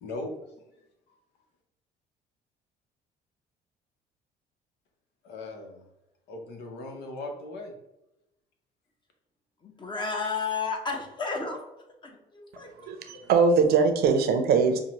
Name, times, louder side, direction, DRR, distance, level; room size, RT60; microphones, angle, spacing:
voice 1, 0.0-0.3 5.2-5.8 6.3-7.7, left 2 dB, 80° left, 3 dB, 0.9 m, -38 dB
voice 2, 9.6-11.6 12.0-12.9 13.2-13.5, left 4 dB, 25° left, 2 dB, 0.9 m, -33 dB
voice 3, 12.9-14.8, right 5 dB, 70° right, 7 dB, 0.6 m, -21 dB
5.5 x 2.2 x 3.0 m, 0.90 s
cardioid pair, 110°, 17 cm